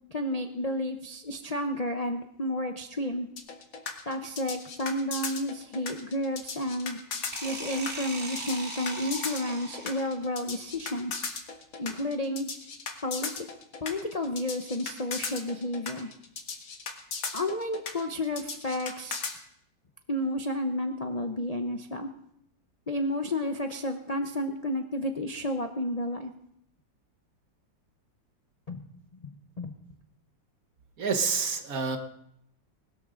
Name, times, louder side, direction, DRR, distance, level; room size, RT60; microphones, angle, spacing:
voice 1, 0.1-3.3 4.1-7.0 7.4-11.3 11.8-12.5 13.0-13.5 13.8-16.1 17.3-19.3 20.1-22.1 22.9-26.3 28.7-28.9 29.2-29.7, left 1 dB, 40° left, 4 dB, 0.5 m, -31 dB
sound 1, 3.4-19.4, left 5 dB, 90° left, 2.4 m, -37 dB
sound 2, 7.3-10.2, right 1 dB, 35° right, 3.0 m, -39 dB
voice 2, 31.0-32.0, right 5 dB, 55° right, 6 dB, 1.4 m, -28 dB
20.0 x 13.0 x 3.8 m, 0.75 s
omnidirectional pair, 2.0 m